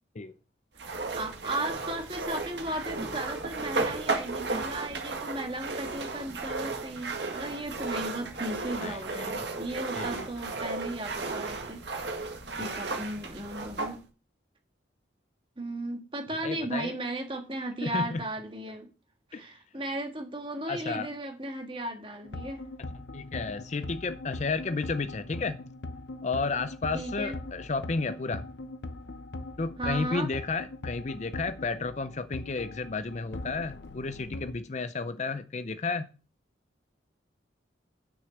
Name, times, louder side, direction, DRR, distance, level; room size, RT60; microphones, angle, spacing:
sound 1, 0.8-14.0, right 3 dB, 65° right, 1.8 m, -34 dB
voice 1, 0.9-14.0 15.6-18.9 19.3-22.6 26.9-27.3 29.8-30.3, right 1 dB, 25° right, 1.6 m, -36 dB
voice 2, 8.8-9.4 9.9-10.3 12.6-12.7 16.4-16.9 17.8-18.2 19.3-19.4 20.7-21.1 23.1-25.6 26.2-28.4 29.6-36.1, left 4 dB, 35° left, 0.5 m, -32 dB
sound 2, 22.2-34.5, left 2 dB, 65° left, 0.8 m, -41 dB
6.4 x 6.1 x 7.1 m
head